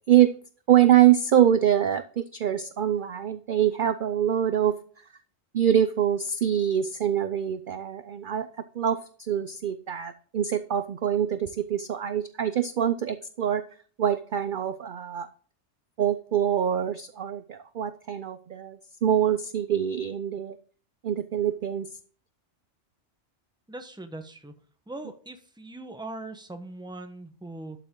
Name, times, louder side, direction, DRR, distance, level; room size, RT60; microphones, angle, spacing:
voice 1, 0.7-4.8 5.5-8.5 8.7-13.6 14.0-15.3 16.0-20.6 21.0-21.9, right 10 dB, 55° right, 11 dB, 0.6 m, -24 dB
voice 2, 23.7-24.5 24.9-27.8, right 2 dB, 5° right, 6 dB, 0.9 m, -40 dB
12.0 x 7.0 x 3.7 m, 0.43 s
omnidirectional pair, 1.3 m